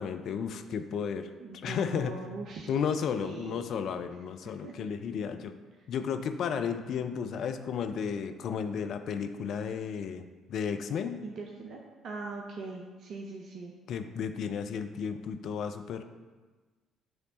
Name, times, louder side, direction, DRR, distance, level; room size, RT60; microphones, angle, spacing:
voice 1, 0.0-1.3 1.6-2.2 2.7-5.6 5.9-11.2 13.9-16.0, left 7 dB, 55° left, 8 dB, 0.4 m, -33 dB
voice 2, 1.4-2.7 3.2-3.6 4.6-4.7 11.2-13.7, right 3 dB, 55° right, 0 dB, 0.6 m, -41 dB
7.9 x 3.2 x 4.0 m, 1.3 s
hypercardioid pair, 50°, 0 cm